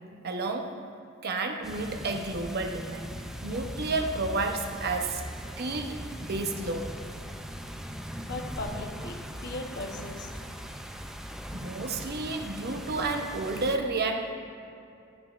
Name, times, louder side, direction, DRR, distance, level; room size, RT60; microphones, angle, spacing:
voice 1, 0.2-0.7 1.2-3.1 3.4-5.2 5.6-7.0 11.5-14.3, right 3 dB, 50° right, 4 dB, 0.7 m, -31 dB
sound 1, 1.6-13.8, equal, ahead, 0.3 m, -40 dB
voice 2, 8.2-10.4, left 2 dB, 60° left, 3 dB, 0.8 m, -38 dB
12.0 x 7.3 x 2.4 m, 2.6 s
head